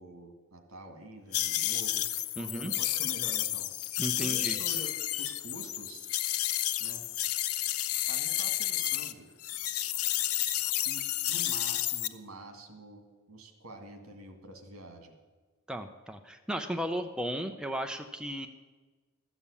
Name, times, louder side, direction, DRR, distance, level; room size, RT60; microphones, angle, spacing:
voice 1, 0.0-2.1 2.3-6.1 6.8-7.0 8.1-9.3 10.9-15.2, right 1 dB, 75° right, 6 dB, 1.9 m, -47 dB
sound 1, 1.3-9.1 9.4-12.1, left 13 dB, 85° left, 0.6 m, -31 dB
voice 2, 2.4-2.7 4.0-4.6 15.7-18.5, equal, 5° right, 5 dB, 0.5 m, -35 dB
13.0 x 7.3 x 8.4 m, 1.4 s
head